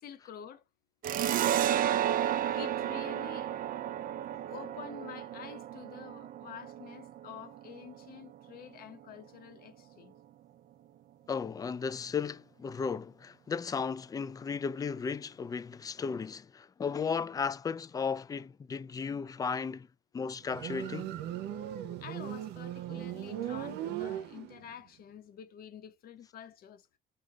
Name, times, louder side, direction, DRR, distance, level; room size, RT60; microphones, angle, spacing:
voice 1, 0.0-0.6 2.5-3.5 4.3-10.2 22.0-26.9, left 9 dB, 60° left, 1.0 m, -48 dB
sound 1, 1.0-8.2, right 11 dB, 55° right, 0.4 m, -32 dB
voice 2, 11.3-19.9 20.1-21.2, left 5 dB, 20° left, 0.3 m, -35 dB
Motorcycle, 20.4-24.8, right 11 dB, 80° right, 0.8 m, -38 dB
4.9 x 2.4 x 3.6 m
cardioid pair, 110°, 17 cm